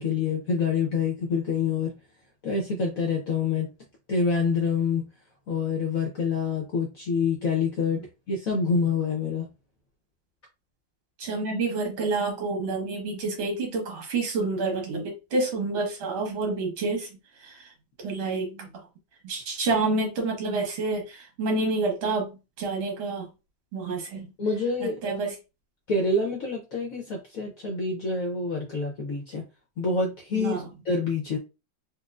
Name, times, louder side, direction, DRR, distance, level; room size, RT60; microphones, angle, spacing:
voice 1, 0.0-1.9 2.4-3.7 4.1-5.1 5.5-9.5 24.4-25.1 25.9-29.4 29.8-31.4, left 4 dB, 65° left, 0.8 m, -27 dB
voice 2, 11.2-17.1 17.4-17.7 18.0-18.7 19.2-23.3 23.7-24.3 24.8-25.4 30.4-30.7, right 3 dB, 75° right, 2.0 m, -28 dB
4.4 x 2.4 x 2.4 m
omnidirectional pair, 2.2 m